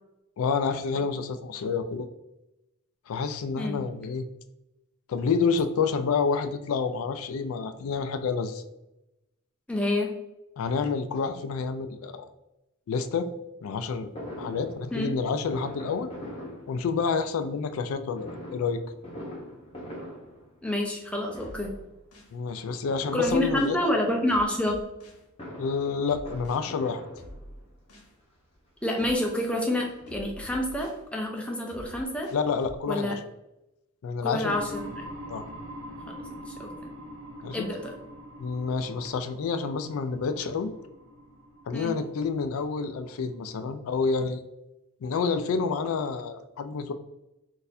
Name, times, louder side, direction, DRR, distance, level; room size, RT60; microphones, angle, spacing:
voice 1, 0.4-2.1 3.1-4.3 5.1-8.6 10.6-12.3 12.9-13.3 13.6-14.1 14.4-16.1 16.7-18.8 22.3-23.8 25.6-27.0 32.3-33.2 34.0-34.6 35.3-35.4 37.4-37.7 38.4-40.7 41.7-44.4 45.0-46.9, left 5 dB, 65° left, 10 dB, 0.3 m, -28 dB
voice 2, 9.7-10.1 14.9-15.1 20.6-21.7 23.1-24.8 28.8-32.3 32.9-33.2 34.2-35.1 36.1-36.9 37.5-37.9 41.7-41.9, left 1 dB, 5° left, 0 dB, 0.5 m, -28 dB
Fireworks, 14.2-17.3 18.1-21.0 21.3-21.9 22.9-24.0 25.1-27.8 28.5-28.6 28.9-29.0 29.3-30.6 30.9-31.0 31.2-31.3, left 1 dB, 25° left, 0.9 m, -43 dB
sound 1, 21.4-22.4 23.2-23.8 24.3-25.2 26.1-26.6 27.2-28.1 29.0-29.5 30.1-31.0 31.7-32.8, equal, 85° left, 0.9 m, -46 dB
sound 2, 34.5-44.0, equal, 80° right, 0.9 m, -44 dB
4.0 x 2.5 x 2.6 m, 0.91 s
head